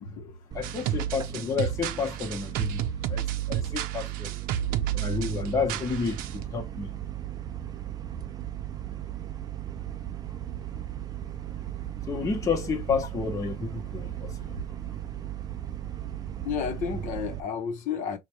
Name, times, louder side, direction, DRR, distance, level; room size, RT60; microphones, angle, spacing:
voice 1, 0.0-0.4 16.4-18.2, left 7 dB, 60° left, 0.8 m, -32 dB
voice 2, 0.5-2.8 3.1-4.3 4.9-7.0 12.1-14.6, left 5 dB, 20° left, 0.9 m, -30 dB
sound 1, 0.5-17.4, right 11 dB, 25° right, 0.3 m, -37 dB
sound 2, 0.6-6.4, right 10 dB, 90° right, 0.5 m, -32 dB
5.2 x 2.3 x 3.0 m
cardioid pair, 165°, 14 cm